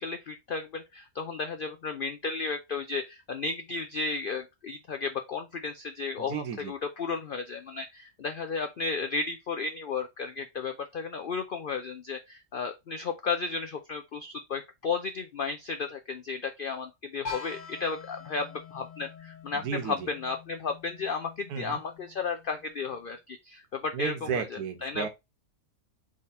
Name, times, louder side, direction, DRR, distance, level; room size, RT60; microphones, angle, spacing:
voice 1, 0.0-25.1, left 4 dB, 90° left, 0.4 m, -34 dB
voice 2, 6.3-6.7 19.6-19.9 21.5-21.8 23.9-25.1, right 7 dB, 85° right, 1.3 m, -33 dB
pot gong, 17.2-23.0, left 6 dB, 30° left, 1.1 m, -45 dB
3.7 x 3.1 x 4.1 m
omnidirectional pair, 1.6 m